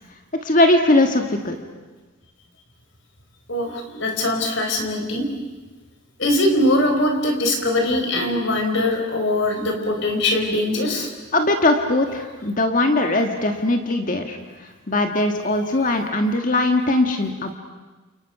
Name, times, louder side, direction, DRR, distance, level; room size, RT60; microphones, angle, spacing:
voice 1, 0.4-1.6 11.3-14.4 14.9-17.5, left 2 dB, 40° left, 4 dB, 1.7 m, -20 dB
voice 2, 3.5-5.2 6.2-11.1, left 1 dB, 60° left, 3 dB, 5.1 m, -21 dB
29.5 x 29.0 x 6.0 m, 1.2 s
head